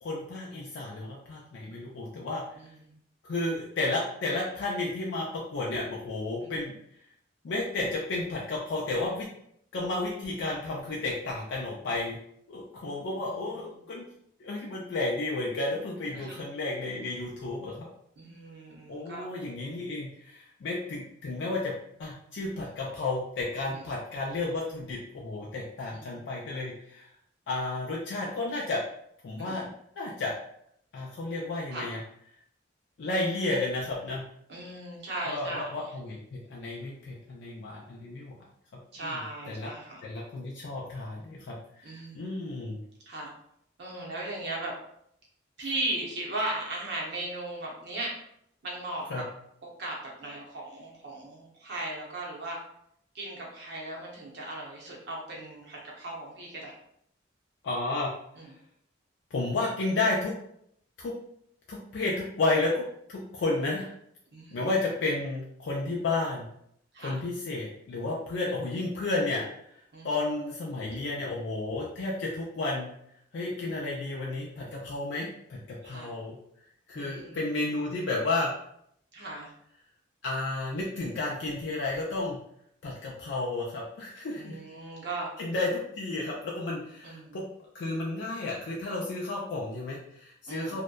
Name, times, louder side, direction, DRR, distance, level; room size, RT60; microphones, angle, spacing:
voice 1, 0.0-2.4 3.2-6.7 7.4-9.3 9.7-12.2 12.5-14.1 14.4-17.9 18.9-21.7 22.0-27.1 27.5-28.8 29.2-30.3 30.9-32.0 33.0-34.2 35.3-38.3 39.0-39.2 39.5-39.7 40.0-42.8 49.1-49.2 57.6-58.1 59.3-60.3 61.0-61.1 61.7-62.8 63.1-63.9 64.5-66.5 67.0-69.5 70.0-72.9 73.3-76.4 76.9-78.5 80.2-82.4 82.8-84.6 85.4-87.5 87.7-90.8, left 2 dB, 65° left, -4 dB, 0.4 m, -32 dB
voice 2, 2.6-3.0 6.4-6.6 13.2-13.4 16.1-16.4 18.2-19.3 23.7-23.8 25.9-26.3 29.4-29.6 31.7-31.9 34.5-35.9 38.9-40.0 41.8-42.3 43.1-43.3 43.8-44.7 45.6-48.1 48.6-49.3 49.8-52.6 53.1-56.7 58.4-58.5 64.3-64.7 66.9-67.1 69.9-70.1 75.8-76.1 76.9-77.4 79.1-79.5 84.4-85.3 87.0-87.4 90.5-90.8, right 2 dB, 60° right, -3 dB, 0.6 m, -37 dB
2.6 x 2.1 x 2.2 m, 0.72 s
head